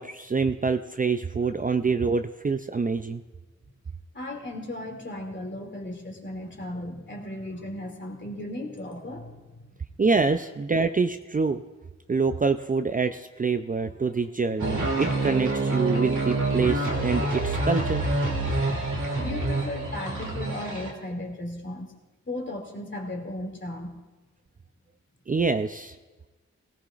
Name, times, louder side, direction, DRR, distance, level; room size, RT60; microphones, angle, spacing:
voice 1, 0.0-3.2 10.0-11.6 12.1-18.0 25.3-26.0, right 4 dB, 30° right, 8 dB, 0.5 m, -26 dB
voice 2, 4.1-9.7 18.6-21.9 22.3-24.0, left 1 dB, 40° left, 1 dB, 2.6 m, -36 dB
sound 1, 14.6-20.9, right 2 dB, 75° right, 2.3 m, -27 dB
18.0 x 16.0 x 2.5 m, 1.2 s
wide cardioid pair, 70°, 30 cm